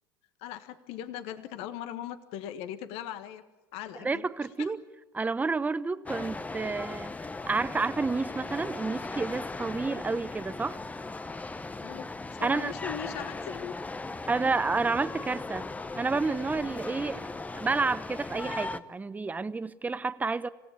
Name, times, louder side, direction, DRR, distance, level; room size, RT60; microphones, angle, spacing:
voice 1, 0.4-3.4 3.7-4.3 4.6-4.7 11.8-12.1 12.4-13.7, left 10 dB, 60° left, 1.6 m, -39 dB
voice 2, 4.0-4.8 5.1-7.1 7.5-10.8 12.4-12.7 14.3-17.2 17.5-20.5, right 4 dB, 15° right, 0.9 m, -30 dB
sound 1, 6.1-18.8, left 3 dB, 15° left, 0.9 m, -38 dB
26.5 x 17.0 x 8.5 m
hypercardioid pair, 90°, 11 cm